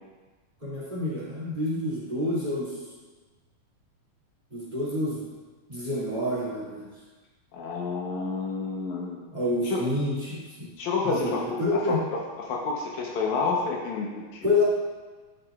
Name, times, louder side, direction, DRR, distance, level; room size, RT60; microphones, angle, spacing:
voice 1, 0.6-2.8 4.5-5.2 5.7-6.9 9.3-10.7 11.0-12.0 14.4-14.6, left 2 dB, 15° right, -7 dB, 2.3 m, -28 dB
voice 2, 7.5-9.3 9.7-9.9 10.8-14.5, left 4 dB, 70° left, -2 dB, 2.3 m, -30 dB
12.0 x 8.0 x 2.4 m, 1.3 s
omnidirectional pair, 3.5 m